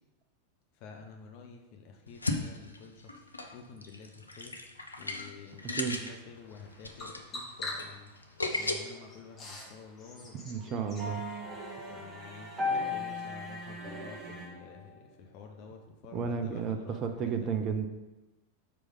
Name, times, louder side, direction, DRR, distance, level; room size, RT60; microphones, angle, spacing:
voice 1, 0.8-3.2 3.5-4.6 5.0-8.1 8.5-11.3 11.9-17.6, left 5 dB, 45° left, 3 dB, 0.8 m, -50 dB
sound 1, 2.1-8.7, left 2 dB, 80° left, 0.6 m, -36 dB
Bird vocalization bird call bird song, 5.5-11.1, left 2 dB, 25° left, 1.7 m, -46 dB
voice 2, 10.4-11.2 16.1-17.9, right 6 dB, 30° right, 6 dB, 0.6 m, -32 dB
sound 2, 11.0-14.9, left 2 dB, 10° right, 1.3 m, -37 dB
4.9 x 4.6 x 5.4 m, 1.0 s
figure-of-eight pair, 90°, 0 cm